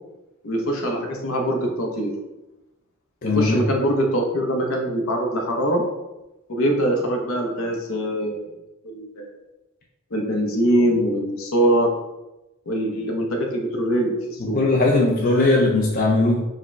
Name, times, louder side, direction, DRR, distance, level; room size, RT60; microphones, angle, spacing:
voice 1, 0.4-2.1 3.2-5.8 6.5-8.5 8.8-9.3 10.1-12.0 12.7-14.6, right 1 dB, 70° left, 1 dB, 0.8 m, -23 dB
voice 2, 3.2-3.6 14.4-16.4, left 2 dB, 45° left, -2 dB, 0.5 m, -19 dB
4.8 x 2.1 x 4.4 m, 1.0 s
head